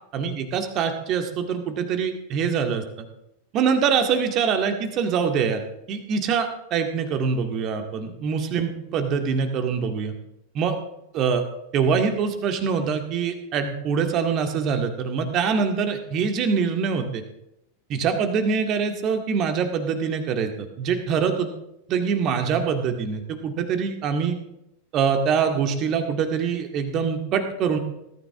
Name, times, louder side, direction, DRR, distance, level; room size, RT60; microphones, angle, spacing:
voice 1, 0.1-3.1 3.5-5.6 5.9-10.1 10.6-10.7 11.1-11.4 11.7-17.2 17.9-20.5 20.8-21.6 21.9-24.3 24.9-27.8, right 6 dB, 35° right, 6 dB, 2.0 m, -24 dB
21.0 x 13.5 x 3.7 m, 0.84 s
figure-of-eight pair, 90°, 0 cm